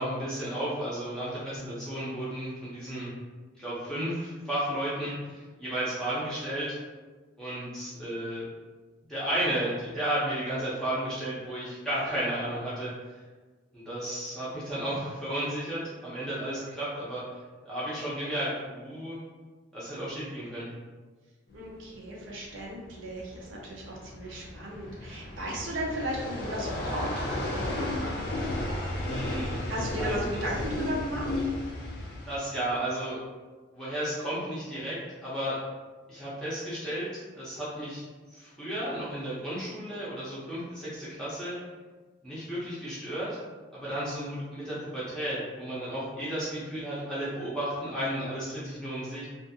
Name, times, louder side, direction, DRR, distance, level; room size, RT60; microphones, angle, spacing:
voice 1, 0.0-3.1 3.6-6.8 7.4-8.5 9.1-12.9 13.7-17.2 17.6-19.2 19.7-20.7 29.0-29.6 29.9-30.3 32.3-33.2 33.7-35.6 36.1-38.0 38.3-41.5 42.2-43.4 43.7-49.3, right 1 dB, 5° left, -10 dB, 0.6 m, -33 dB
sound 1, 21.5-32.4, left 1 dB, 50° left, 0.5 m, -34 dB
voice 2, 21.5-27.3 29.7-31.3, equal, 80° right, -3 dB, 0.7 m, -35 dB
2.5 x 2.5 x 2.6 m, 1.3 s
head